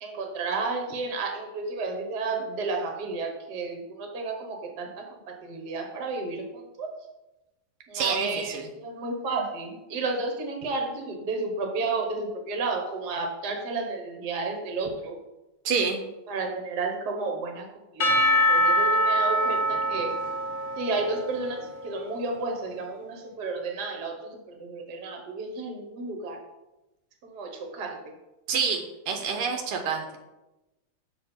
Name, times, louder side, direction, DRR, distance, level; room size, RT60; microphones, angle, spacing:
voice 1, 0.0-6.9 7.9-15.2 16.3-17.7 17.9-18.2 18.5-20.1 20.8-24.3 24.6-26.4 27.2-28.0, right 3 dB, 55° right, 2 dB, 1.6 m, -32 dB
voice 2, 7.9-8.7 15.7-16.0 28.5-30.2, right 5 dB, 85° right, 4 dB, 1.7 m, -28 dB
Percussion / Church bell, 18.0-22.2, equal, 50° left, 0.8 m, -24 dB
6.6 x 5.7 x 4.4 m, 1.0 s
omnidirectional pair, 2.4 m